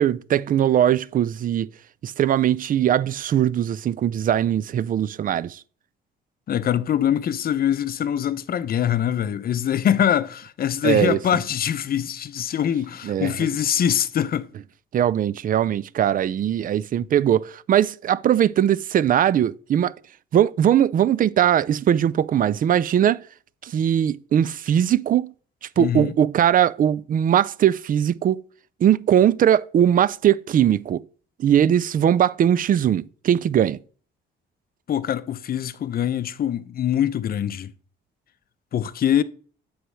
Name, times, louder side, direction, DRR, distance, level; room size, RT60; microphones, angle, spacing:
voice 1, 0.0-1.7 2.0-5.6 10.8-11.2 13.0-13.3 14.9-19.9 20.3-23.2 23.6-25.3 25.8-28.4 28.8-31.0 31.4-33.8, right 10 dB, 45° right, 0.4 m, -20 dB
voice 2, 6.5-14.5 25.8-26.1 34.9-37.7 38.7-39.2, left 9 dB, 50° left, 0.6 m, -23 dB
7.9 x 3.2 x 6.3 m
cardioid pair, 90°, 20 cm